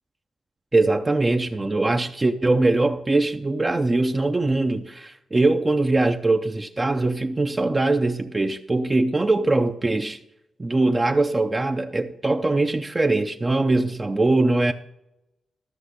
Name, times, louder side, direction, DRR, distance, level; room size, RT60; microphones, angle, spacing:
voice 1, 0.7-10.2 10.6-14.7, right 2 dB, 25° right, 0.6 m, -22 dB
13.5 x 6.2 x 6.4 m
cardioid pair, 105°, 0 cm